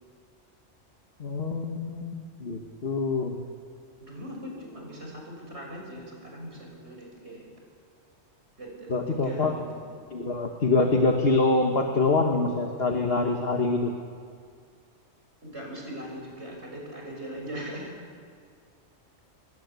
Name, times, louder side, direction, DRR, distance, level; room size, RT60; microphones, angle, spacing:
voice 1, 1.2-3.3 8.9-9.5 10.1-13.9, left 3 dB, 50° left, 3 dB, 2.0 m, -25 dB
voice 2, 4.0-7.5 8.6-9.8 15.4-18.0, equal, 60° right, 0 dB, 7.0 m, -40 dB
28.5 x 22.5 x 8.4 m, 2.1 s
omnidirectional pair, 1.3 m